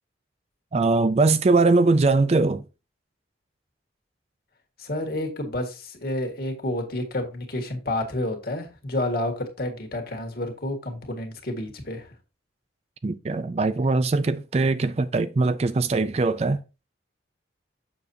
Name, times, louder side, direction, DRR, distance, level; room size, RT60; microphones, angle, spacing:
voice 1, 0.7-2.6 13.0-16.6, right 3 dB, 35° right, 0.4 m, -21 dB
voice 2, 4.8-12.1, left 1 dB, 55° left, 1.8 m, -30 dB
7.1 x 6.4 x 2.7 m
head